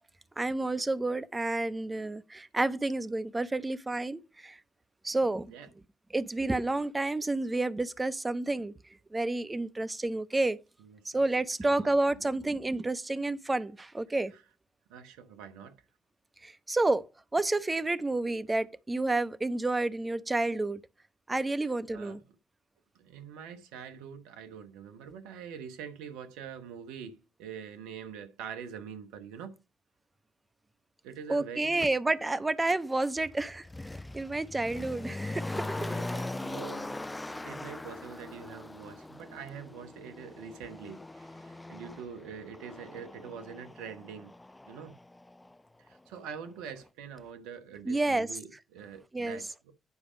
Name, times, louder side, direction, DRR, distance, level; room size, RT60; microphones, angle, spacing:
voice 1, 0.4-4.6 5.0-5.5 6.1-8.7 9.1-10.6 11.0-14.3 16.4-17.0 17.3-20.8 21.3-22.2 31.3-33.7 34.1-35.9 47.8-48.3 49.1-49.4, right 2 dB, 25° right, 1.0 m, -30 dB
voice 2, 10.8-11.2 11.6-11.9 12.1-12.3 14.3-14.4 14.9-15.8 21.9-22.2 23.0-29.6 31.0-31.9 34.6-34.8 35.7-44.3 44.7-44.9 45.8-49.7, right 7 dB, 85° right, 0.9 m, -45 dB
Motor vehicle (road), 31.8-31.9 32.7-45.6 45.9-46.0, left 2 dB, 20° left, 0.3 m, -41 dB
9.8 x 4.9 x 5.0 m
hypercardioid pair, 45°, 0 cm